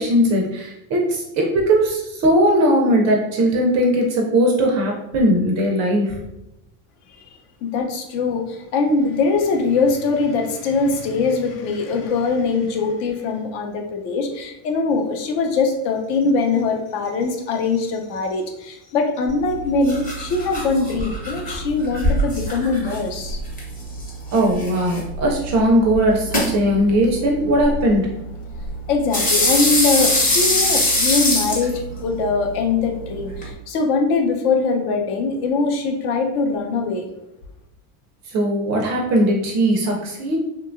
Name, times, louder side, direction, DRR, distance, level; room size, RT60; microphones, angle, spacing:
voice 1, 0.0-6.2 24.3-28.1 38.3-40.4, right 1 dB, 40° right, 0 dB, 0.4 m, -19 dB
voice 2, 7.6-23.4 28.9-37.1, left 4 dB, 60° left, 3 dB, 0.7 m, -22 dB
sound 1, 19.3-33.5, left 1 dB, 20° left, 0.7 m, -24 dB
2.8 x 2.2 x 2.4 m, 0.89 s
supercardioid pair, 135°, 46 cm